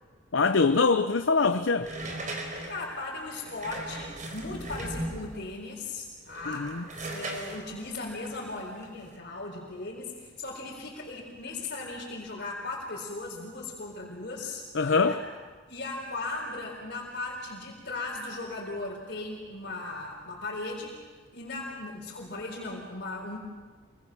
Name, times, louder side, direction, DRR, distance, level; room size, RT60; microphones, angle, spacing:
voice 1, 0.3-1.9 6.5-6.8 14.7-15.2, left 4 dB, 85° left, 0.7 m, -23 dB
sound 1, 1.8-5.5 6.2-9.1, right 1 dB, 45° right, 4.5 m, -38 dB
voice 2, 2.7-6.7 7.1-15.2 15.7-21.0 21.3-23.4, left 2 dB, 60° left, 4.2 m, -37 dB
28.0 x 23.5 x 6.2 m
head